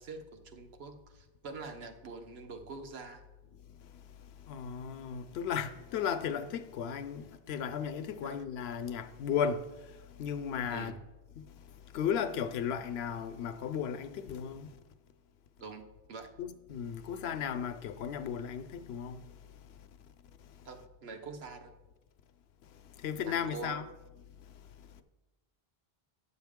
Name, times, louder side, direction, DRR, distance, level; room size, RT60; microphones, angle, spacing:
voice 1, 0.0-3.2 8.2-8.4 10.7-11.0 15.6-16.3 20.6-21.7 23.3-23.8, right 4 dB, 80° right, 1.1 m, -45 dB
voice 2, 4.5-9.6 10.2-10.9 11.9-14.7 16.4-19.2 23.0-23.8, left 7 dB, 85° left, 0.8 m, -35 dB
9.7 x 6.8 x 3.6 m
omnidirectional pair, 1.0 m